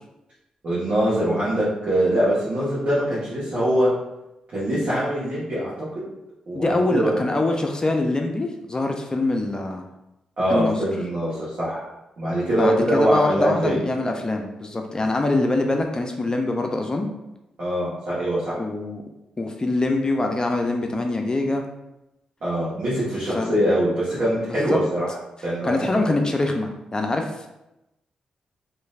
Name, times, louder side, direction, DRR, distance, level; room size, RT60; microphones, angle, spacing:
voice 1, 0.6-3.9 4.5-5.7 6.5-7.2 10.4-11.9 12.2-13.8 17.6-18.6 22.4-25.2 25.4-26.0, right 1 dB, 60° right, -10 dB, 1.1 m, -23 dB
voice 2, 6.5-9.9 10.5-10.8 12.5-17.1 18.6-19.0 19.4-21.6 23.3-23.6 24.5-24.8 25.6-27.5, left 2 dB, 30° left, 3 dB, 0.4 m, -24 dB
3.1 x 2.5 x 2.4 m, 0.92 s
supercardioid pair, 50°, 2 cm